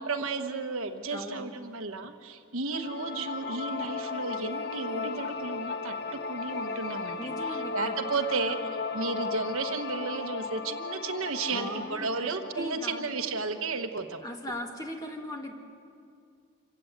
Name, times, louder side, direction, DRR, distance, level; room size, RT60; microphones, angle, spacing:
voice 1, 0.0-5.9 6.3-8.6 8.9-14.2, right 4 dB, 75° right, 6 dB, 1.3 m, -33 dB
voice 2, 1.1-1.4 7.2-8.0 8.3-8.5 11.5-13.1 14.2-15.5, equal, 15° left, 2 dB, 2.0 m, -38 dB
sound 1, 2.7-13.8, left 4 dB, 50° left, 1.0 m, -36 dB
26.5 x 16.5 x 8.0 m, 2.4 s
head